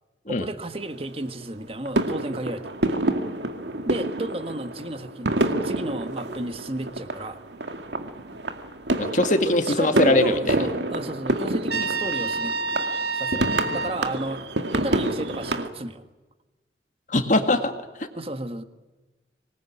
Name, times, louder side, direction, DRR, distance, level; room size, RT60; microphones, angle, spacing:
voice 1, 0.3-2.7 3.9-7.4 9.4-12.6 13.1-14.4 14.7-16.0 18.1-18.6, right 1 dB, 35° right, 9 dB, 1.6 m, -32 dB
sound 1, 0.7-1.4 1.9-15.7, right 1 dB, 80° right, 2.2 m, -28 dB
voice 2, 8.9-10.5 17.1-17.7 18.0-18.1, left 1 dB, 45° left, 7 dB, 2.0 m, -21 dB
Trumpet, 11.7-14.0, right 4 dB, 65° right, 1.8 m, -28 dB
25.5 x 20.0 x 9.9 m, 1.2 s
head